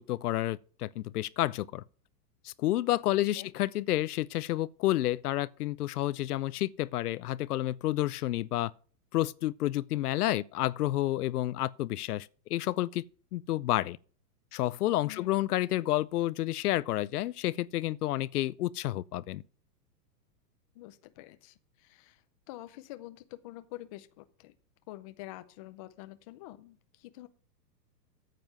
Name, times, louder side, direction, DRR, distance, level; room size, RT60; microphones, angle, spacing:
voice 1, 0.0-1.8 2.4-8.7 9.1-13.0 13.3-14.0 14.5-19.4, left 15 dB, 70° left, 0.6 m, -30 dB
voice 2, 3.1-3.5 15.0-15.5 20.7-22.2 22.5-24.5 24.9-27.3, left 16 dB, 25° left, 0.5 m, -47 dB
9.2 x 7.7 x 6.5 m
hypercardioid pair, 145°, 48 cm